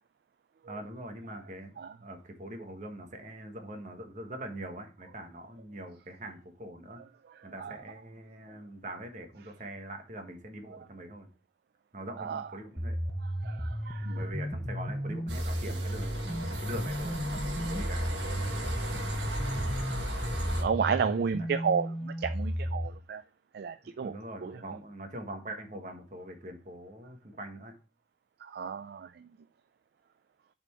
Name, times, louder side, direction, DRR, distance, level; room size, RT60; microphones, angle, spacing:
voice 1, 0.6-7.0 7.4-11.3 11.9-13.0 14.2-18.0 24.0-27.7, right 1 dB, 45° right, 1.3 m, -43 dB
voice 2, 7.0-7.8 10.7-10.9 12.2-12.5 13.2-14.3 20.6-23.2 23.5-24.1 24.4-24.8 28.4-29.3, right 6 dB, 60° right, 0.3 m, -33 dB
sound 1, 12.8-22.9, equal, ahead, 0.7 m, -34 dB
sound 2, 15.3-20.6, right 1 dB, 85° right, 1.6 m, -36 dB
7.0 x 4.4 x 4.5 m
head